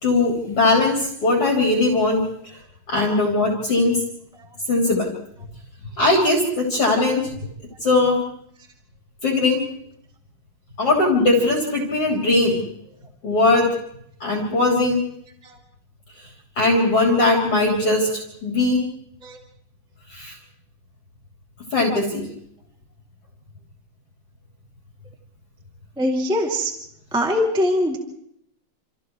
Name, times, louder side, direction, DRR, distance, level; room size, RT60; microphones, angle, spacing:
voice 1, 0.0-2.6 2.9-4.0 4.7-5.1 6.0-7.3 7.8-8.3 9.2-9.6 10.8-12.6 13.2-13.8 14.2-15.1 16.2-16.3 16.6-18.8 20.1-20.4 21.7-22.3, left 2 dB, 45° left, -1 dB, 4.1 m, -20 dB
voice 2, 26.0-26.7 27.1-28.0, left 1 dB, ahead, 0 dB, 2.1 m, -22 dB
29.0 x 28.5 x 3.2 m, 0.72 s
omnidirectional pair, 3.7 m